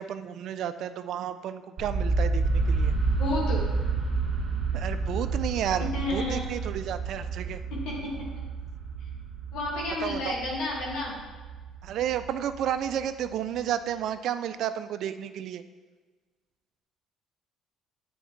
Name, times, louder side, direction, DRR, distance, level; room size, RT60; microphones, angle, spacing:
voice 1, 0.0-2.9 4.7-7.6 10.0-10.3 11.8-15.6, right 10 dB, 65° right, 11 dB, 0.3 m, -32 dB
sound 1, 1.8-13.6, right 4 dB, 50° right, 1.7 m, -30 dB
voice 2, 3.2-3.6 5.9-6.4 8.0-8.1 9.5-11.1, left 2 dB, 80° left, -3 dB, 1.8 m, -30 dB
7.9 x 4.3 x 3.1 m, 1.3 s
supercardioid pair, 85°, 0 cm